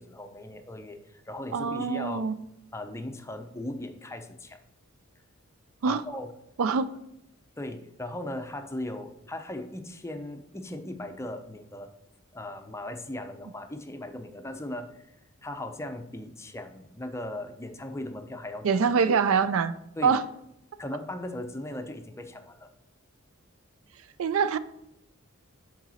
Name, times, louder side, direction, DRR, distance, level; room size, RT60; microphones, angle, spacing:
voice 1, 0.0-2.3 2.7-4.6 5.8-6.3 7.6-11.9 12.3-15.1 15.4-19.2 20.0-20.2 20.8-22.7, left 1 dB, 15° left, 7 dB, 0.5 m, -38 dB
voice 2, 1.5-2.3 5.8-6.0 6.6-6.9 18.6-19.7 20.0-20.2 24.2-24.6, right 6 dB, 70° right, 14 dB, 0.4 m, -24 dB
8.9 x 4.0 x 4.1 m, 0.82 s
head